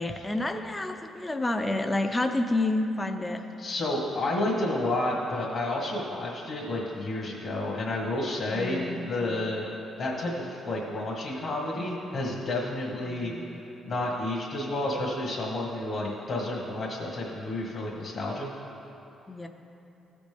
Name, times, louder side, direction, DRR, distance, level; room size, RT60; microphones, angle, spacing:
voice 1, 0.0-3.4 8.5-9.1 13.0-13.6 19.3-19.5, left 2 dB, 15° left, 6 dB, 0.5 m, -29 dB
voice 2, 3.6-9.6 10.0-13.3 13.8-18.5, left 1 dB, 55° left, -4 dB, 1.5 m, -30 dB
15.0 x 5.1 x 3.4 m, 2.9 s
cardioid pair, 90°, 0 cm